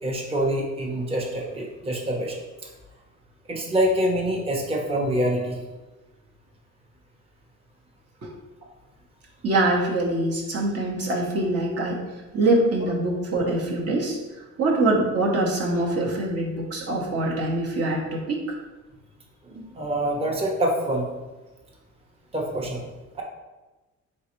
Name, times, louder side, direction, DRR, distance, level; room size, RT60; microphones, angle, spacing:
voice 1, 0.0-2.4 3.5-5.6 19.5-21.0 22.3-22.8, right 1 dB, 20° right, -1 dB, 0.7 m, -25 dB
voice 2, 9.4-12.0 12.3-14.2 14.6-18.6, right 2 dB, 55° right, -2 dB, 0.8 m, -24 dB
3.8 x 3.3 x 3.0 m, 1.2 s
cardioid pair, 90°, 30 cm